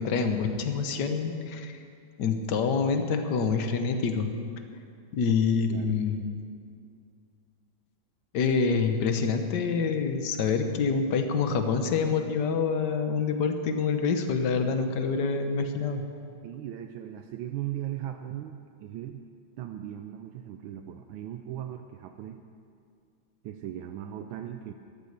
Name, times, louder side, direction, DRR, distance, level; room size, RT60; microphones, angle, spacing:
voice 1, 0.0-1.7 2.2-4.3 5.1-6.3 8.3-16.0, left 5 dB, 60° left, 7 dB, 1.6 m, -26 dB
voice 2, 5.7-6.0 16.4-19.2 19.6-22.4 23.4-24.7, right 11 dB, 80° right, 6 dB, 1.4 m, -38 dB
13.5 x 12.5 x 6.7 m, 2.3 s
omnidirectional pair, 2.2 m